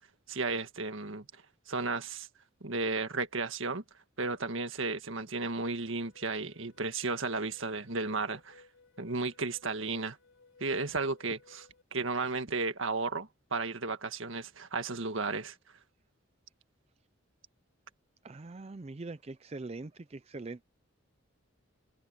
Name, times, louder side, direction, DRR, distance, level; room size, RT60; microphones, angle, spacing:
voice 1, 0.3-1.3 1.7-2.3 2.6-3.8 4.2-8.6 9.0-10.2 10.6-15.6, right 3 dB, 70° right, 1.7 m, -34 dB
sound 1, 5.8-11.8, left 4 dB, 70° left, 5.6 m, -61 dB
voice 2, 18.2-20.6, right 3 dB, 30° right, 0.4 m, -42 dB
head